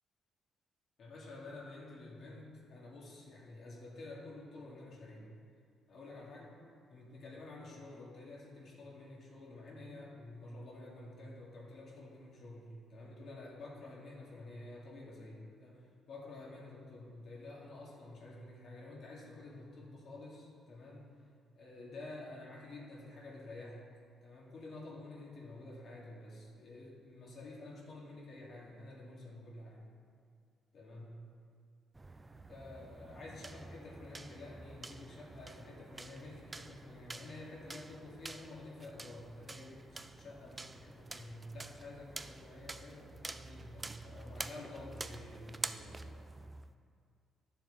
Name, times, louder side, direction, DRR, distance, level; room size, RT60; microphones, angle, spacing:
voice 1, 1.0-5.3 5.9-6.6 6.9-21.1 21.6-23.8 24.2-29.9 30.7-31.1 32.5-46.5, left 2 dB, 60° left, -5 dB, 2.3 m, -50 dB
sound 1, 31.9-46.7, right 2 dB, 20° right, 0.4 m, -48 dB
11.5 x 6.9 x 4.1 m, 2.2 s
cardioid pair, 90°, 0 cm